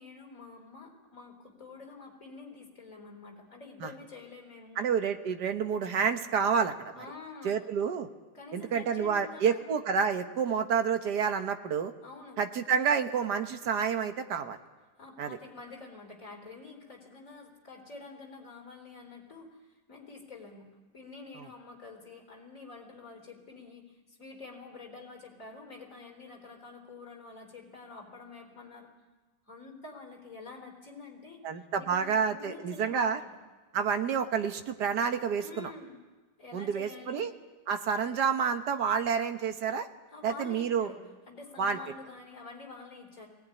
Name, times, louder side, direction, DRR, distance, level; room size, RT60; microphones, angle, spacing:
voice 1, 0.0-4.8 6.9-7.7 8.3-9.6 12.0-12.4 15.0-28.9 29.5-31.4 31.8-33.3 35.4-36.0 36.4-37.3 40.1-41.0 41.3-43.3, left 3 dB, 50° left, 2 dB, 4.4 m, -48 dB
voice 2, 4.8-6.9 7.4-8.1 8.5-11.9 12.4-14.6 15.2-15.4 31.4-33.2 33.7-35.7 36.5-37.3 37.7-39.9 40.2-40.9 41.6-41.8, right 6 dB, 70° right, 7 dB, 1.7 m, -29 dB
21.0 x 18.0 x 9.9 m, 1.2 s
omnidirectional pair, 1.8 m